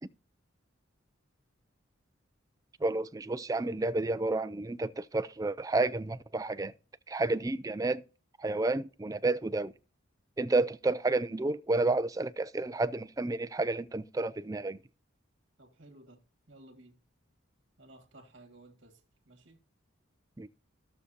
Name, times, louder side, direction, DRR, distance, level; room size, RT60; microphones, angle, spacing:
voice 1, 2.8-6.7 7.1-8.0 8.4-9.7 10.4-14.8 20.4-20.5, right 2 dB, 15° right, 0.3 m, -30 dB
voice 2, 15.6-16.2 16.5-17.0 17.8-19.6, right 1 dB, 55° right, 1.9 m, -56 dB
15.5 x 6.5 x 2.7 m
head